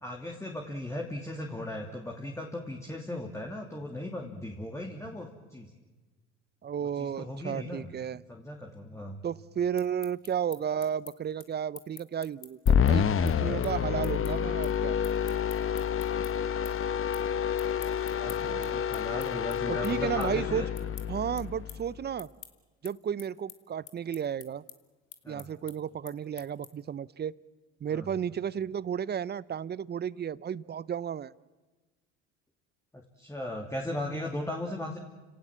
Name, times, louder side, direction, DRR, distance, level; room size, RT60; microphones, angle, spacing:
voice 1, 0.0-5.7 6.9-7.9 8.3-9.2 18.1-18.5 18.9-20.7 25.2-25.5 27.9-28.1 32.9-35.0, left 1 dB, 10° left, 1 dB, 2.8 m, -37 dB
voice 2, 6.6-8.2 9.2-15.0 18.4-18.8 19.7-20.6 21.1-22.3 22.8-24.6 25.3-27.3 27.8-31.3, right 8 dB, 30° right, 20 dB, 0.7 m, -33 dB
sound 1, 9.6-16.3 16.6-17.3 17.5-26.9, left 11 dB, 60° left, 2.2 m, -49 dB
sound 2, 12.7-22.0, left 8 dB, 40° left, 1.1 m, -28 dB
30.0 x 18.0 x 7.5 m, 1.2 s
hypercardioid pair, 75°, 35 cm